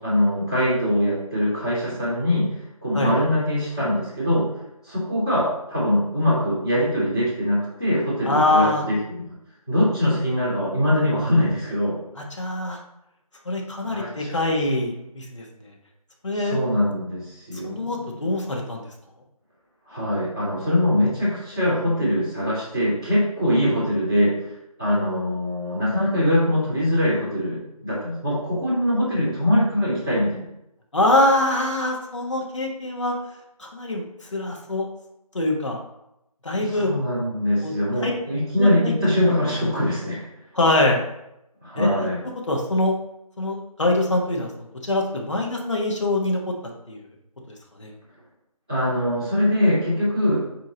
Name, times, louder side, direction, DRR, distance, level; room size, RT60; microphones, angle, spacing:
voice 1, 0.0-2.5 2.8-4.5 4.8-9.3 9.7-12.0 13.8-14.4 16.4-18.1 19.9-24.5 24.8-30.4 36.6-40.3 41.6-42.2 48.7-50.5, left 1 dB, 5° left, -15 dB, 0.9 m, -22 dB
voice 2, 8.2-8.8 12.4-12.8 13.4-15.4 16.2-16.6 17.6-18.8 30.9-33.2 33.6-34.0 34.3-34.9 35.3-35.8 36.4-36.9 37.6-37.7 38.0-38.1 38.6-38.9 40.5-41.0 41.8-42.1 42.5-42.9 43.4-44.5 44.9-46.4 46.9-47.0 47.8-47.9, left 1 dB, 50° left, 0 dB, 1.3 m, -23 dB
8.4 x 3.0 x 3.9 m, 0.85 s
figure-of-eight pair, 180°, 19 cm